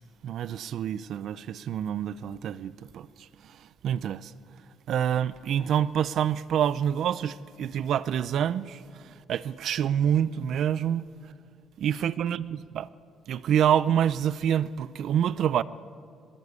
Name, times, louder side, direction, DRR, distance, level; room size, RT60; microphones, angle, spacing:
voice 1, 0.2-4.3 4.9-11.1 11.8-12.9 13.3-15.6, right 9 dB, 60° right, 0.6 m, -27 dB
23.5 x 21.5 x 8.4 m
cardioid pair, 150°, 0 cm